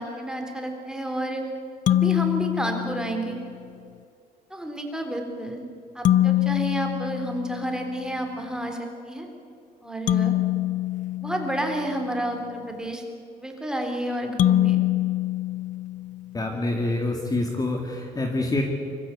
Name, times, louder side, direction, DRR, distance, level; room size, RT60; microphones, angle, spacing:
voice 1, 0.0-1.5 1.9-3.4 4.5-5.7 5.9-9.3 9.8-10.4 11.2-13.0 13.4-14.8, right 1 dB, 5° right, 3 dB, 3.8 m, -30 dB
sound 1, 1.9-3.5 6.0-8.1 10.1-12.2 14.4-16.4, left 13 dB, 50° left, 0.6 m, -24 dB
voice 2, 16.3-18.6, left 2 dB, 20° left, 2 dB, 2.3 m, -26 dB
24.0 x 15.0 x 8.5 m, 2.5 s
cardioid pair, 110°, 17 cm